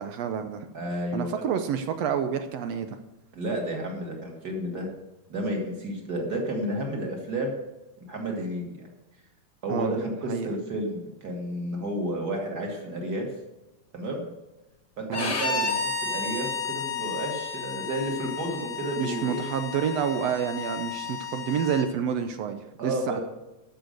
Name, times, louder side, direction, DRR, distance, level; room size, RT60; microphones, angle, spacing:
voice 1, 0.0-0.7 1.1-3.0 9.7-10.0 10.3-10.5 15.1-15.3 19.0-23.2, right 8 dB, 75° right, 8 dB, 1.6 m, -29 dB
voice 2, 0.7-1.4 3.3-4.9 5.3-7.6 8.1-8.9 9.6-13.3 13.9-14.3 15.0-19.4 22.8-23.2, right 1 dB, 30° right, 1 dB, 2.6 m, -31 dB
Bowed string instrument, 15.1-21.9, left 4 dB, 65° left, 0.6 m, -32 dB
12.5 x 6.7 x 6.6 m, 1.0 s
omnidirectional pair, 3.6 m